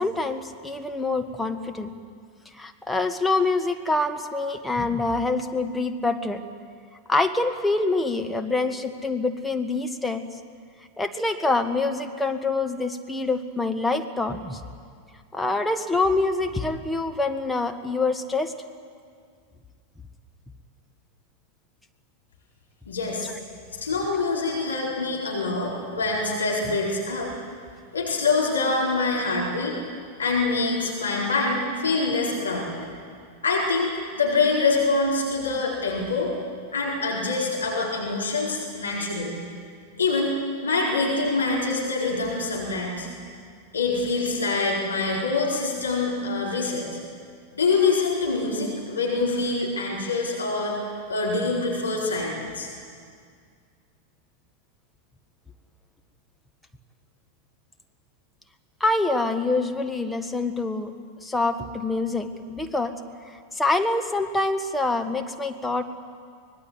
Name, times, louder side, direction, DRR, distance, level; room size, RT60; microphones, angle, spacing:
voice 1, 0.0-1.9 2.5-6.4 7.1-10.2 11.0-14.6 15.3-18.5 23.2-23.3 58.8-60.9 61.2-62.9 63.3-65.8, left 3 dB, 5° left, 6 dB, 1.5 m, -25 dB
voice 2, 22.9-23.3 23.8-27.3 27.9-29.8 30.2-32.8 33.4-36.3 36.7-39.3 40.0-40.3 40.6-43.1 43.7-46.9 47.5-52.7, left 3 dB, 75° left, -3 dB, 4.2 m, -25 dB
24.5 x 20.0 x 7.9 m, 2.1 s
figure-of-eight pair, 90°, 0 cm